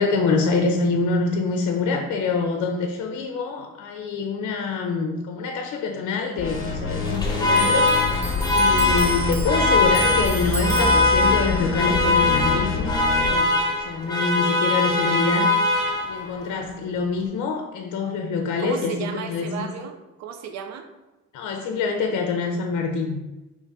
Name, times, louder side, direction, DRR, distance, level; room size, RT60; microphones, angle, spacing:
voice 1, 0.0-8.2 8.5-15.6 16.0-19.7 21.3-23.2, left 4 dB, 75° left, 2 dB, 0.6 m, -25 dB
sound 1, 6.4-13.4, left 4 dB, 45° left, 0.8 m, -27 dB
Alarm, 7.0-16.4, left 2 dB, 15° left, 1.0 m, -22 dB
Clock, 7.6-14.5 14.8-16.1 16.4-17.3, right 3 dB, 20° right, 0.7 m, -35 dB
voice 2, 18.6-20.9, right 7 dB, 60° right, 6 dB, 0.6 m, -34 dB
3.3 x 3.1 x 4.8 m, 1.0 s
cardioid pair, 90°, 30 cm